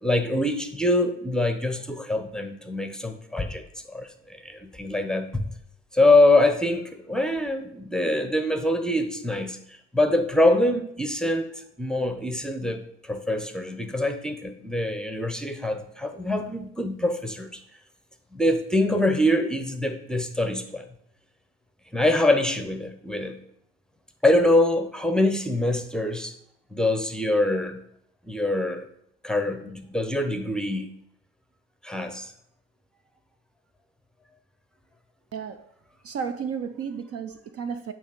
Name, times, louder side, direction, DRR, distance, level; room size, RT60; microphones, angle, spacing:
voice 1, 0.0-3.6 3.9-5.4 5.9-17.6 18.3-20.9 21.9-23.4 24.2-26.3 26.7-27.8 28.2-28.9 29.2-30.9 31.8-32.3, left 1 dB, ahead, 0.7 m, -24 dB
voice 2, 36.0-37.9, right 6 dB, 40° right, 0.5 m, -32 dB
8.4 x 2.9 x 5.2 m
hypercardioid pair, 60°, 36 cm